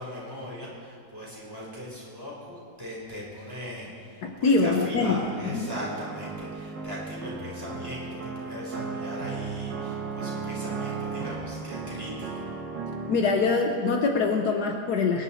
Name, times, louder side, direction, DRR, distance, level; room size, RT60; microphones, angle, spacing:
voice 1, 0.0-12.5, equal, 10° right, -6 dB, 4.5 m, -39 dB
voice 2, 4.2-5.2 5.5-5.7 13.1-15.2, left 4 dB, 65° left, 3 dB, 1.4 m, -24 dB
sound 1, 5.2-13.2, right 4 dB, 80° right, 2.1 m, -35 dB
24.5 x 10.5 x 4.3 m, 2.6 s
omnidirectional pair, 1.9 m